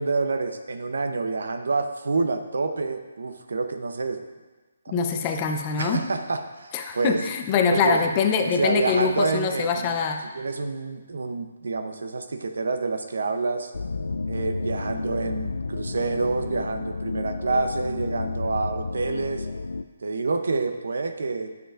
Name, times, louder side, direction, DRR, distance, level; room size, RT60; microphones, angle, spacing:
voice 1, 0.0-4.2 4.9-5.0 5.8-7.2 7.7-8.0 8.4-10.0 10.3-13.7 14.3-19.5 20.0-21.5, right 3 dB, 75° right, 8 dB, 0.7 m, -27 dB
voice 2, 4.9-6.0 6.7-10.2, left 6 dB, 25° left, 4 dB, 0.7 m, -24 dB
sound 1, 13.7-19.8, left 3 dB, 80° left, 0.4 m, -31 dB
9.9 x 7.0 x 2.5 m, 1.3 s
hypercardioid pair, 150°, 0 cm